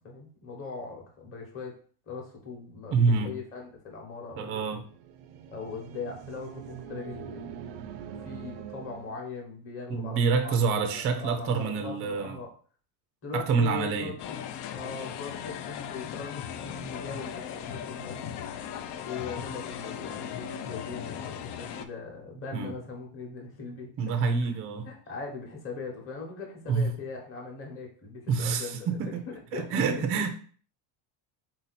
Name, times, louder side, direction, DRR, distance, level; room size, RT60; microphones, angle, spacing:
voice 1, 0.0-1.8 2.1-4.8 5.5-7.8 8.2-10.6 10.9-12.5 13.2-14.4 14.7-18.3 19.0-24.5 24.9-28.9 29.5-30.3, left 4 dB, 25° left, 0 dB, 1.1 m, -40 dB
voice 2, 2.9-3.3 4.4-4.8 9.9-12.4 13.3-14.1 22.5-22.7 24.0-24.9 26.7-26.9 28.3-29.2 29.5-30.3, right 5 dB, 30° right, 6 dB, 0.4 m, -27 dB
sound 1, 4.7-9.3, right 9 dB, 85° right, 0.6 m, -43 dB
sound 2, 14.2-21.8, left 9 dB, 55° left, 0.5 m, -38 dB
3.9 x 2.8 x 4.1 m, 0.43 s
cardioid pair, 135°, 50 cm